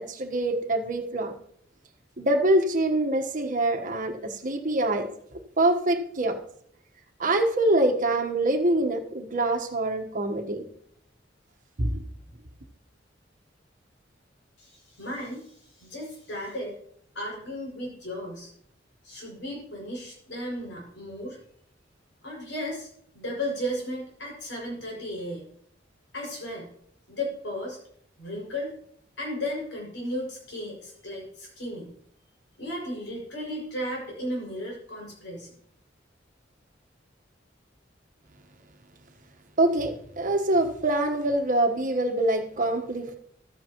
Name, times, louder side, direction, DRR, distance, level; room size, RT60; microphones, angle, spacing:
voice 1, 0.0-1.3 2.2-5.1 5.6-6.4 7.2-10.6 11.8-12.0 39.6-43.2, right 1 dB, 45° right, 5 dB, 1.3 m, -25 dB
voice 2, 14.6-16.7 17.1-18.5 19.0-21.4 22.2-25.4 26.1-26.7 27.1-27.8 28.2-28.7 29.2-31.9 32.6-35.5, equal, 80° left, -2 dB, 6.3 m, -35 dB
14.5 x 13.0 x 3.0 m, 0.66 s
head